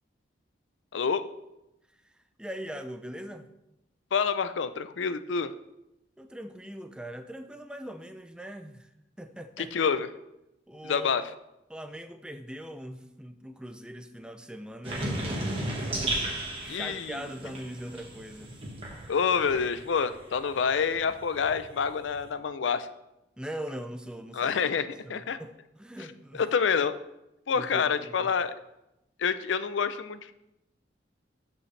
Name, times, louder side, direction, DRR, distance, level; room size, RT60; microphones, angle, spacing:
voice 1, 0.9-1.2 4.1-5.5 9.6-10.1 10.8-11.3 16.7-17.2 19.1-22.9 24.3-25.4 26.4-27.0 27.5-28.5 29.2-30.3, left 6 dB, 90° left, 13 dB, 0.5 m, -27 dB
voice 2, 2.4-3.5 6.2-8.9 9.2-9.9 10.7-11.1 11.7-15.7 16.6-18.6 23.4-24.6 25.0-26.4 27.5-28.3, equal, 5° right, 8 dB, 0.4 m, -41 dB
sound 1, 14.8-20.2 20.5-22.2, right 1 dB, 30° right, 1.5 m, -35 dB
12.5 x 5.3 x 3.2 m, 0.90 s
head